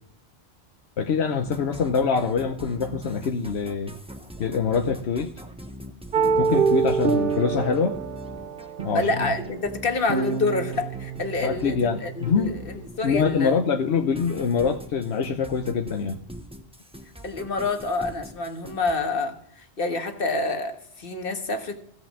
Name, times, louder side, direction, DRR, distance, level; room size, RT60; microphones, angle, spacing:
voice 1, 1.0-3.9 4.4-5.3 6.4-8.0 8.8-9.3 11.4-12.5 13.0-16.2, left 6 dB, 80° left, 1.1 m, -24 dB
sound 1, 1.4-13.6 13.9-18.9, equal, 5° right, 1.0 m, -42 dB
sound 2, 6.1-12.8, right 5 dB, 55° right, 1.1 m, -27 dB
voice 2, 8.9-13.6 17.2-21.8, left 3 dB, 60° left, 1.7 m, -27 dB
16.0 x 5.8 x 7.3 m
omnidirectional pair, 1.1 m